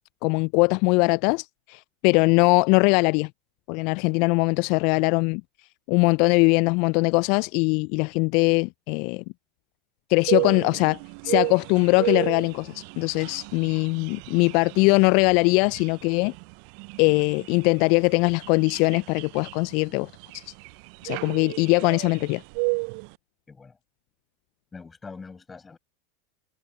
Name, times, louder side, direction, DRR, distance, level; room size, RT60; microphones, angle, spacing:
voice 1, 0.2-3.3 3.7-5.4 5.9-9.2 10.1-16.3 17.0-20.5 21.0-22.4, left 30 dB, 55° left, 0.5 m, -21 dB
sound 1, 10.3-23.1, right 34 dB, 55° right, 0.5 m, -33 dB
voice 2, 24.7-25.8, left 4 dB, 15° left, 5.7 m, -43 dB
figure-of-eight pair, 85°, 0 cm